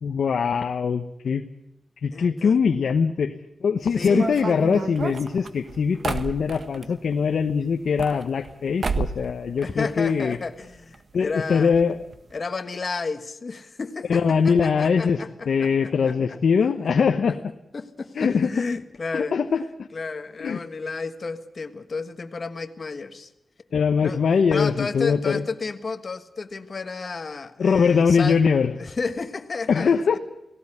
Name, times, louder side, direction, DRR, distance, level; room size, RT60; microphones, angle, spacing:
voice 1, 0.0-1.4 2.0-3.3 3.6-10.4 11.1-12.0 14.1-17.4 18.1-18.5 19.1-19.9 20.4-20.6 23.7-25.5 27.6-28.8 29.7-30.2, left 6 dB, 75° left, 6 dB, 1.0 m, -22 dB
voice 2, 2.1-2.6 3.9-4.3 9.6-11.7 12.3-16.4 17.3-17.4 17.7-19.3 19.9-23.3 24.0-24.2 24.5-28.4 28.8-30.2, left 4 dB, 45° left, 8 dB, 1.5 m, -32 dB
sound 1, 4.0-6.9 7.7-8.5 8.8-9.3 9.6-10.4 10.6-10.7 10.9-11.0 11.7-11.8 12.1-12.3, right 4 dB, 50° right, 1.5 m, -30 dB
18.0 x 17.5 x 9.8 m, 0.85 s
wide cardioid pair, 110°, 0 cm